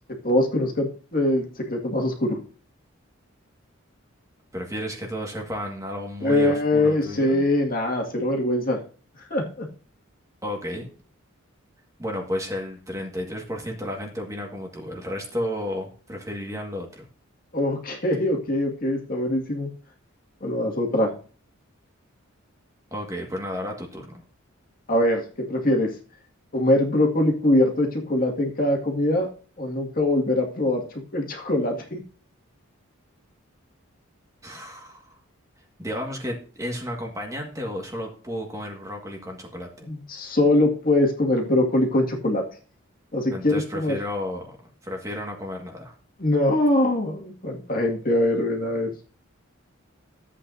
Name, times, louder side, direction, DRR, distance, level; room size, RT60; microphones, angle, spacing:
voice 1, 0.2-2.4 6.2-8.8 9.3-9.7 17.5-19.7 20.4-21.1 24.9-25.9 26.5-29.3 29.6-30.8 31.1-32.0 39.8-42.4 43.1-44.0 46.2-48.9, left 1 dB, 40° left, 0 dB, 2.1 m, -23 dB
voice 2, 4.5-7.5 10.4-10.9 12.0-17.1 22.9-24.1 34.4-35.2 35.8-39.9 43.3-44.6 44.8-45.9, left 1 dB, 15° right, 0 dB, 1.8 m, -32 dB
13.5 x 8.4 x 2.7 m, 0.40 s
head